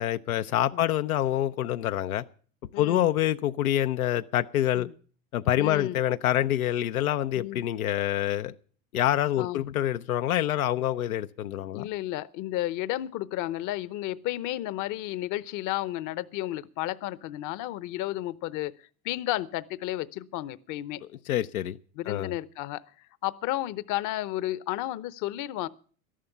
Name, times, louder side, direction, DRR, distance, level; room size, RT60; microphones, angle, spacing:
voice 1, 0.0-2.2 2.8-4.9 5.3-8.5 8.9-11.9 21.3-21.8 22.1-22.3, left 12 dB, 85° left, 0.6 m, -26 dB
voice 2, 2.7-3.1 4.7-4.9 5.6-6.0 7.3-7.6 9.4-9.6 11.7-18.7 19.0-21.0 22.0-22.8 23.2-25.7, left 15 dB, 45° left, 0.8 m, -32 dB
13.0 x 11.5 x 6.7 m
hypercardioid pair, 95°, 42 cm